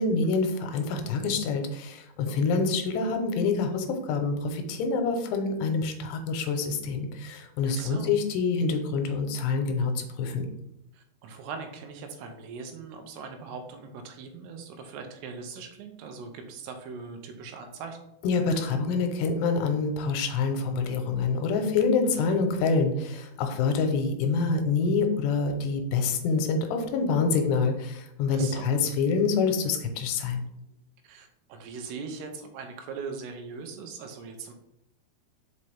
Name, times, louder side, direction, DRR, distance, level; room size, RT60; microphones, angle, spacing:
voice 1, 0.0-10.5 18.2-30.4, left 4 dB, 90° left, 5 dB, 2.9 m, -26 dB
voice 2, 7.7-8.1 10.9-18.0 28.3-28.7 31.0-34.5, right 5 dB, 90° right, 5 dB, 2.8 m, -40 dB
5.6 x 5.2 x 3.3 m, 0.81 s
omnidirectional pair, 4.8 m